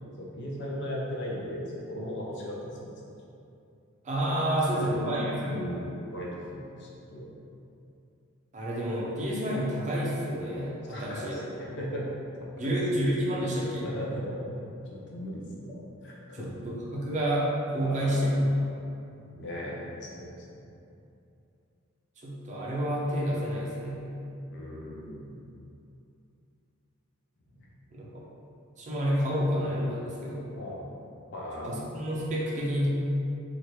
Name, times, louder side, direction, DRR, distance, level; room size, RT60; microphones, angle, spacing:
voice 1, 0.0-2.9 4.7-5.0 5.4-7.3 10.9-12.0 12.4-12.7 13.0-13.4 13.8-16.7 17.8-18.3 19.1-20.7 24.5-25.4 30.5-30.8 31.3-31.8, equal, 55° left, -4 dB, 0.6 m, -38 dB
voice 2, 4.0-5.6 8.5-11.4 12.6-13.9 16.3-18.6 22.2-24.2 27.9-28.2 28.8-30.5 31.6-32.9, equal, 35° right, -5 dB, 0.5 m, -29 dB
2.9 x 2.4 x 3.0 m, 2.7 s
head